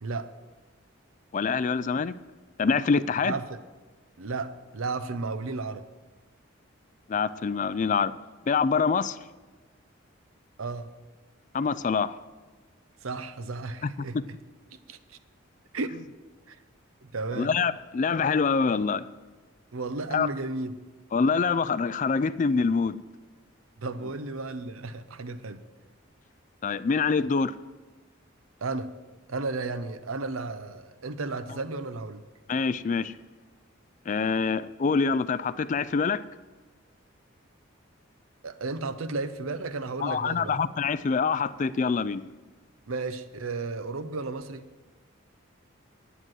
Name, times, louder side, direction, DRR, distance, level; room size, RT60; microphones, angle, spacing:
voice 1, 1.3-2.1 2.6-3.3 7.1-8.1 8.5-9.2 11.5-12.2 13.8-13.9 17.4-19.1 20.1-20.3 21.1-23.0 26.6-27.5 32.5-33.1 34.1-36.2 40.0-42.2, left 5 dB, 35° left, 16 dB, 0.3 m, -25 dB
voice 2, 3.3-3.6 4.2-5.8 10.6-10.9 13.0-14.2 14.7-15.2 15.7-15.9 16.5-16.6 17.0-17.5 19.7-20.7 23.8-25.6 28.6-28.9 29.3-32.2 38.4-40.6 42.9-44.6, right 3 dB, 85° right, 11 dB, 0.7 m, -33 dB
9.8 x 9.3 x 6.3 m, 1.3 s
head